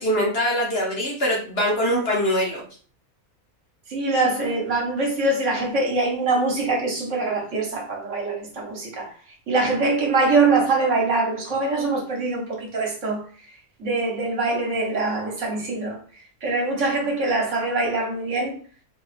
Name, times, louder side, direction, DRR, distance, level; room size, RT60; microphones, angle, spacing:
voice 1, 0.0-2.6, equal, 50° left, 1.1 m, -23 dB
voice 2, 3.9-9.1 9.5-13.2 13.8-16.0 16.4-18.5, right 3 dB, 60° right, 1.3 m, -23 dB
3.8 x 2.3 x 3.3 m
omnidirectional pair, 1.5 m